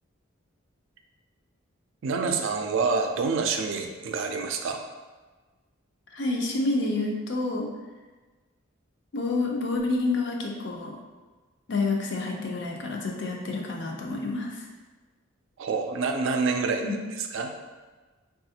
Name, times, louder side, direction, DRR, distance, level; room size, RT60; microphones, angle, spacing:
voice 1, 2.0-4.8 15.6-17.5, right 4 dB, 65° right, 4 dB, 0.3 m, -27 dB
voice 2, 6.1-7.7 9.1-11.0 11.7-14.6 16.8-16.9, left 3 dB, 55° left, 0 dB, 0.5 m, -28 dB
4.0 x 2.3 x 2.8 m, 1.3 s
head